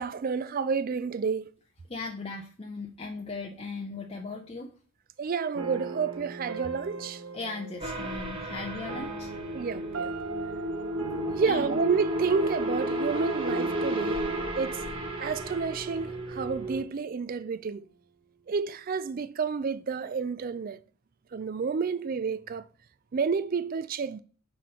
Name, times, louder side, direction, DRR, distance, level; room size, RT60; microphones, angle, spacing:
voice 1, 0.0-1.5 5.2-7.2 9.5-10.1 11.3-14.2 14.6-14.8 15.2-17.9 18.5-20.8 21.3-22.6 23.1-24.2, right 5 dB, 40° right, 0.3 m, -30 dB
voice 2, 1.9-4.7 7.3-9.3 11.4-11.8, left 3 dB, 25° left, 0.6 m, -37 dB
sound 1, 5.5-16.7, right 4 dB, 65° right, 0.7 m, -41 dB
sound 2, 7.8-16.8, right 1 dB, 25° right, 1.0 m, -32 dB
5.9 x 3.2 x 5.5 m
head